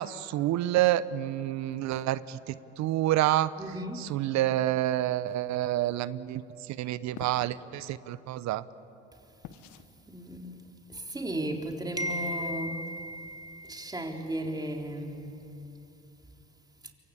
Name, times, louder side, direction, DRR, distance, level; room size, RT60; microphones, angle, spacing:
voice 1, 0.0-3.5 4.0-8.6, right 14 dB, 65° right, 17 dB, 0.9 m, -28 dB
voice 2, 3.6-4.0 10.1-10.6 10.9-15.3, right 1 dB, 15° right, 3 dB, 3.6 m, -34 dB
sound 1, 7.1-7.6 9.4-9.9, left 10 dB, 70° left, 1.4 m, -45 dB
27.5 x 23.5 x 8.5 m, 2.9 s
supercardioid pair, 75°, 31 cm